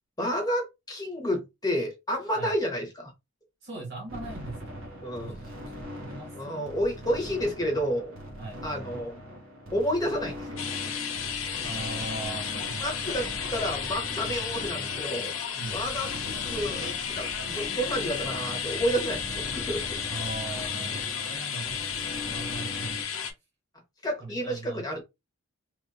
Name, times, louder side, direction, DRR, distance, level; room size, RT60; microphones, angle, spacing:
voice 1, 0.2-3.1 5.0-5.4 6.3-8.1 8.6-9.3 9.7-10.6 12.8-15.3 15.7-19.8 24.0-25.0, equal, 15° left, 1.1 m, -30 dB
voice 2, 3.6-6.7 8.4-8.7 11.6-13.3 14.2-14.4 15.6-15.9 20.1-23.3 24.2-25.0, right 3 dB, 55° right, 1.6 m, -40 dB
sound 1, 4.1-23.0, equal, 70° right, 1.2 m, -40 dB
sound 2, 10.6-23.3, left 8 dB, 70° left, 0.7 m, -33 dB
3.1 x 2.7 x 2.5 m
head